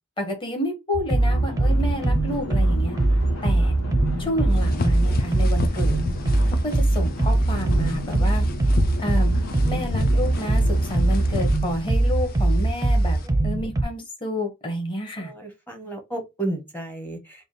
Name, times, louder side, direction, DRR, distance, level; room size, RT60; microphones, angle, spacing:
voice 1, 0.2-3.0 3.4-3.7 4.2-6.0 6.6-8.4 9.0-9.3 9.7-13.2 13.4-15.3, left 1 dB, 25° left, 1.0 m, -29 dB
sound 1, 0.9-13.8, right 2 dB, 15° right, 0.5 m, -21 dB
sound 2, 1.2-11.6, left 1 dB, 75° left, 0.9 m, -35 dB
sound 3, 4.5-13.3, left 3 dB, 40° left, 0.4 m, -32 dB
voice 2, 15.2-17.5, right 2 dB, 10° left, 0.8 m, -33 dB
3.4 x 2.2 x 3.9 m
head